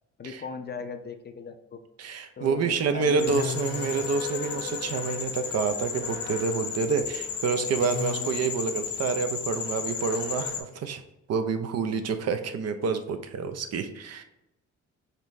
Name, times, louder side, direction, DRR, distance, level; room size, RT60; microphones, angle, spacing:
voice 1, 0.2-1.8 2.4-3.7, left 5 dB, 35° left, 7 dB, 0.5 m, -38 dB
voice 2, 2.0-11.0 11.3-14.2, right 5 dB, 55° right, 8 dB, 0.6 m, -28 dB
sound 1, 3.2-10.6, left 7 dB, 65° left, 0.9 m, -33 dB
5.2 x 3.1 x 2.6 m, 0.91 s
cardioid pair, 90°, 30 cm